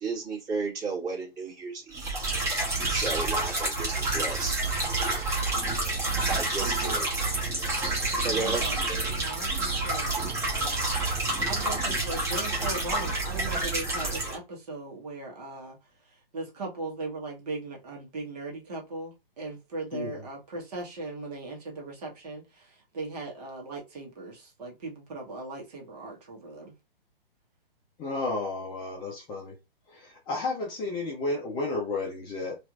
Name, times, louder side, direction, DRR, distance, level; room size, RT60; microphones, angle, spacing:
voice 1, 0.0-2.2 2.9-4.6 6.3-7.1 8.2-8.6, right 4 dB, 25° right, 1.8 m, -33 dB
sound 1, 1.9-14.4, right 2 dB, 10° right, 1.0 m, -28 dB
voice 2, 6.6-7.0 8.3-8.8 9.1-10.8 11.4-15.8 16.3-26.7, right 2 dB, 45° right, 1.4 m, -39 dB
voice 3, 28.0-29.5 29.9-32.6, left 3 dB, 15° left, 0.6 m, -32 dB
4.2 x 2.6 x 2.5 m
figure-of-eight pair, 130°, 30 cm